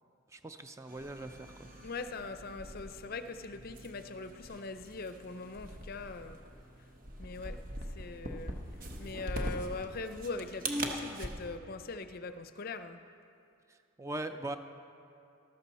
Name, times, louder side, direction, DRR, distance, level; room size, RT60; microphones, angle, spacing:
voice 1, 0.3-1.7 13.7-14.6, right 1 dB, 15° right, 8 dB, 0.3 m, -41 dB
sound 1, 0.9-11.3, right 1 dB, 40° right, 1.0 m, -42 dB
voice 2, 1.8-6.4 7.2-7.6 8.0-8.6 9.0-13.0, left 3 dB, 45° left, 10 dB, 0.5 m, -41 dB
14.0 x 12.5 x 4.1 m, 2.5 s
head